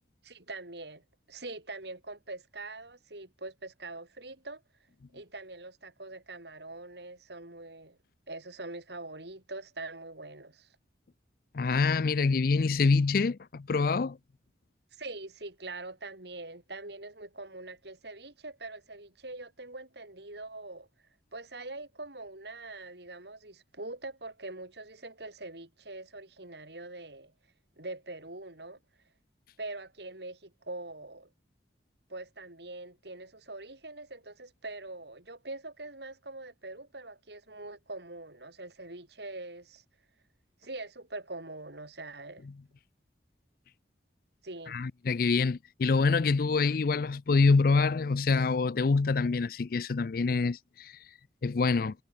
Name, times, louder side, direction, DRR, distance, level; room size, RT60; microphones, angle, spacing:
voice 1, 0.2-4.6 5.1-8.0 8.3-10.7 14.9-20.9 21.3-27.3 27.8-28.8 29.6-31.3 32.1-39.8 40.6-42.5 44.4-44.8, right 2 dB, 65° right, 4.4 m, -43 dB
voice 2, 11.5-14.2 44.7-50.9 51.4-51.9, left 4 dB, 55° left, 0.4 m, -26 dB
head